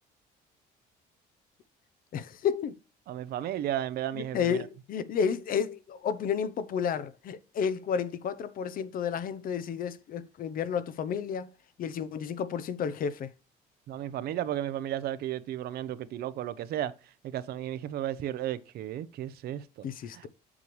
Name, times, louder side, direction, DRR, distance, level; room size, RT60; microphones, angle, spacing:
voice 1, 2.1-2.7 4.1-11.5 11.8-13.3 19.8-20.3, left 7 dB, 55° left, 0.8 m, -31 dB
voice 2, 3.1-4.6 13.9-16.9 17.2-20.3, right 12 dB, 70° right, 0.7 m, -34 dB
7.3 x 7.0 x 3.2 m
cardioid pair, 110°, 17 cm